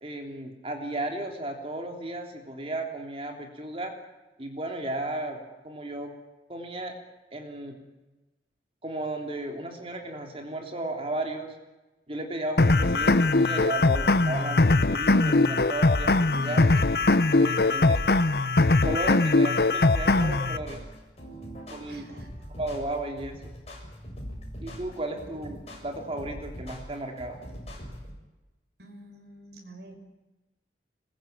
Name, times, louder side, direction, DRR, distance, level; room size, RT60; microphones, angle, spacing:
voice 1, 0.0-3.9 4.4-6.1 6.5-7.0 7.3-7.8 8.8-11.5 12.1-16.8 17.4-18.0 18.8-20.8 21.7-22.1 22.5-23.6 24.6-27.4, right 2 dB, 30° right, 3 dB, 3.2 m, -34 dB
sound 1, 12.6-20.6, left 2 dB, 60° left, 0.9 m, -21 dB
voice 2, 16.3-17.1 21.9-22.3 25.1-25.6 28.8-29.9, right 1 dB, 70° right, 3 dB, 5.8 m, -47 dB
sound 2, 20.2-28.1, equal, 35° left, 7.3 m, -41 dB
25.5 x 21.5 x 8.9 m, 1.1 s
head